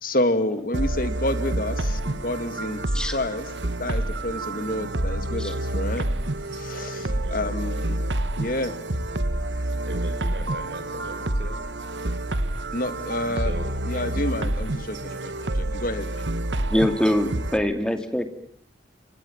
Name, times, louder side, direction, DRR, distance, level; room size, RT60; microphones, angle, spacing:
voice 1, 0.0-2.8 3.1-6.1 6.5-8.0 8.4-8.7 12.7-13.5 13.8-16.2, left 1 dB, 50° left, 11 dB, 2.2 m, -29 dB
sound 1, 0.7-17.6, right 1 dB, 80° right, 1.6 m, -28 dB
voice 2, 6.9-7.3 9.8-11.6 13.3-14.1 14.9-15.7, right 1 dB, 65° right, 6 dB, 5.0 m, -40 dB
voice 3, 16.7-18.3, left 1 dB, 5° left, 7 dB, 2.4 m, -23 dB
29.0 x 24.5 x 7.2 m, 0.63 s
head